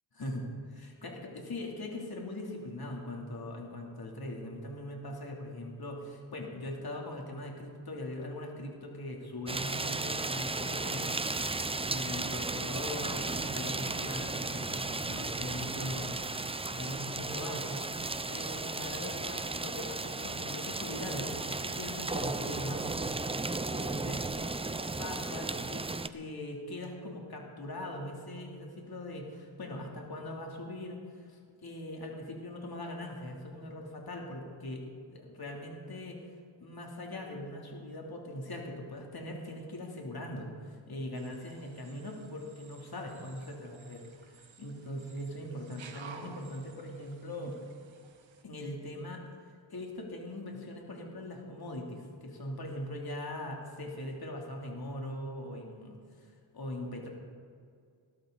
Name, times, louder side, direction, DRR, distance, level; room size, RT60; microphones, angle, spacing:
voice 1, 0.1-11.6 11.8-17.9 18.3-22.9 23.2-24.3 25.0-34.8 35.1-36.2 36.6-47.6 48.4-49.2 49.7-57.1, left 1 dB, 50° left, 0 dB, 3.0 m, -41 dB
sound 1, 9.5-26.1, right 3 dB, 15° right, 0.5 m, -35 dB
Jungle Night Geko or Monkey Call Creepy, 41.1-48.4, right 6 dB, 80° right, 1.4 m, -54 dB
20.0 x 12.5 x 4.0 m, 2.2 s
cardioid pair, 75°, 46 cm